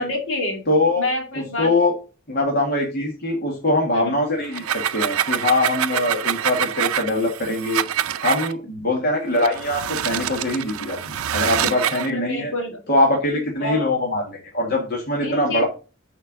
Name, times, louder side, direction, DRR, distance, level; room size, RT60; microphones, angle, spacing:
voice 1, 0.0-0.6 1.0-1.7 3.9-4.1 5.9-6.2 11.8-12.8 13.6-14.0 15.2-15.6, left 2 dB, 65° left, 2 dB, 2.3 m, -28 dB
voice 2, 0.7-1.1 1.6-1.9 2.3-7.8 8.2-12.5 12.9-15.6, left 2 dB, 45° left, -2 dB, 1.8 m, -22 dB
sound 1, 4.4-8.5 9.3-12.1, right 10 dB, 85° right, 0.5 m, -25 dB
6.7 x 4.5 x 6.2 m, 0.34 s
head